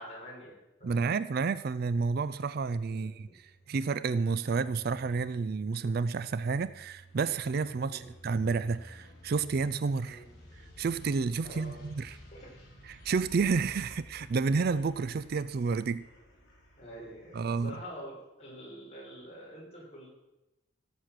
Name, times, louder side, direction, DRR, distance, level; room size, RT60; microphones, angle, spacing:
voice 1, 0.0-1.2 2.9-3.1 7.8-8.1 10.1-10.3 11.4-11.9 12.3-12.5 16.8-20.1, equal, 30° left, -5 dB, 5.8 m, -46 dB
voice 2, 0.8-3.4 3.7-10.2 10.8-12.2 12.9-16.0 17.3-17.8, right 4 dB, 50° right, 15 dB, 0.4 m, -30 dB
sound 1, 2.3-18.0, equal, 50° left, 5.7 m, -54 dB
16.5 x 7.6 x 6.5 m, 0.98 s
head